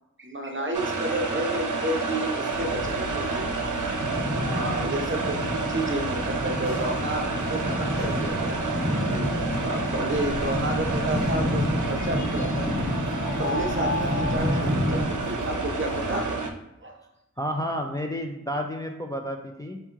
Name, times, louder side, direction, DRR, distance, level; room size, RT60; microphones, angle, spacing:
voice 1, 0.2-8.6 9.0-12.9 13.3-16.4 16.8-17.0, right 1 dB, 40° right, 3 dB, 0.7 m, -31 dB
sound 1, 0.7-16.5, right 4 dB, 75° right, 0.6 m, -30 dB
sound 2, 2.5-16.3, left 3 dB, 65° left, 0.5 m, -36 dB
sound 3, 4.0-15.0, left 1 dB, 5° right, 1.0 m, -30 dB
voice 2, 4.4-4.8 17.4-19.8, equal, 10° left, 2 dB, 0.4 m, -31 dB
4.4 x 2.9 x 3.6 m, 0.88 s
wide cardioid pair, 65°, 31 cm